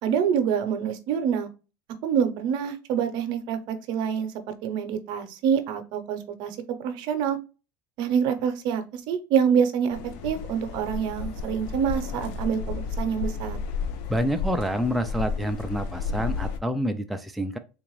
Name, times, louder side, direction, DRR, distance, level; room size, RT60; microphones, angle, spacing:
voice 1, 0.0-1.5 2.0-4.3 4.6-7.4 8.0-10.0 10.2-13.6, right 7 dB, 60° right, 8 dB, 0.7 m, -26 dB
sound 1, 9.9-16.6, left 4 dB, 70° left, 0.6 m, -32 dB
voice 2, 14.1-17.6, equal, ahead, 6 dB, 0.3 m, -27 dB
3.8 x 2.5 x 3.0 m, 0.32 s
supercardioid pair, 115°, 9 cm